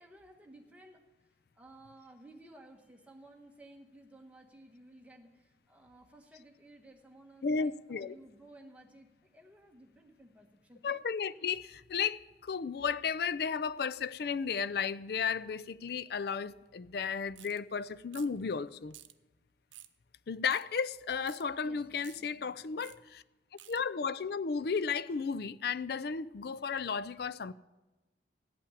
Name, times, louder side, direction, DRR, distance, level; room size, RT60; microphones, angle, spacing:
voice 1, 0.0-10.9 21.6-22.9, right 1 dB, 5° right, 1.4 m, -56 dB
voice 2, 7.4-8.2 10.8-19.0 20.3-23.2 23.7-27.5, left 6 dB, 55° left, 0.4 m, -34 dB
sound 1, 17.4-17.6 18.1-18.4 18.9-19.1 19.7-20.0 20.5-20.6 21.3-21.4 22.0-22.2 22.8-23.0 23.6-23.8, right 14 dB, 85° right, 0.6 m, -52 dB
14.5 x 5.7 x 10.0 m
head